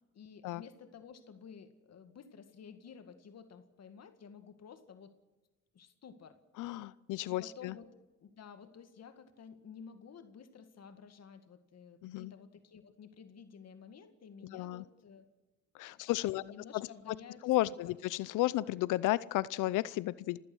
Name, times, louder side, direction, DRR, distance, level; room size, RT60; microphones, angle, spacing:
voice 1, 0.1-5.1 5.7-6.4 7.3-15.3 15.9-17.9, left 6 dB, 55° left, 9 dB, 2.1 m, -53 dB
voice 2, 6.6-7.7 12.0-12.3 14.5-14.8 15.8-16.4 16.7-16.9 17.4-20.4, left 16 dB, 90° left, 19 dB, 0.6 m, -33 dB
29.5 x 16.5 x 6.3 m, 1.2 s
cardioid pair, 90°, 30 cm